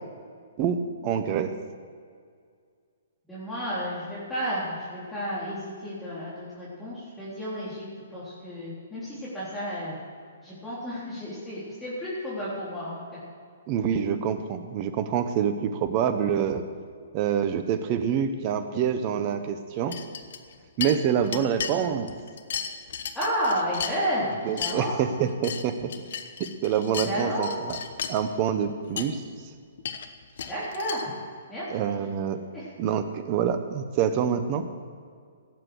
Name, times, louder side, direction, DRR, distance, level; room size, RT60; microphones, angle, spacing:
voice 1, 0.6-1.5 13.7-16.6 17.1-19.9 20.8-22.1 24.4-25.8 26.4-27.8 28.1-29.2 31.7-32.4 32.8-34.7, right 8 dB, 35° right, 9 dB, 1.1 m, -26 dB
voice 2, 3.3-10.0 10.4-13.0 23.2-24.3 24.5-24.9 27.0-27.5 30.5-31.1 31.5-31.6 32.5-32.7, equal, 5° left, -10 dB, 3.7 m, -31 dB
sound 1, 19.9-20.5 20.8-21.7 22.1-24.2 24.5-24.7 25.2-27.1 27.4-28.2 28.7-28.8 29.0-29.1 29.8-31.0, left 7 dB, 60° left, 1.0 m, -34 dB
17.0 x 7.7 x 6.4 m, 2.1 s
figure-of-eight pair, 125°, 0 cm